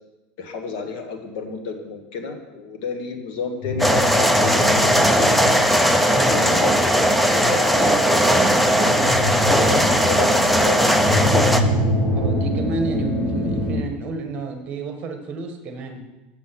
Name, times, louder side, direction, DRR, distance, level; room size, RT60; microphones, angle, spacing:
voice 1, 0.4-5.0 6.3-7.0 7.3-10.3 10.6-11.4, left 4 dB, 65° left, 4 dB, 1.5 m, -31 dB
sound 1, 3.6-13.8, left 1 dB, 40° left, 2.8 m, -26 dB
sound 2, 3.8-11.6, equal, ahead, 0.5 m, -18 dB
voice 2, 12.1-16.0, right 3 dB, 35° right, 4 dB, 1.4 m, -29 dB
7.5 x 6.7 x 5.8 m, 1.1 s
supercardioid pair, 150°, 4 cm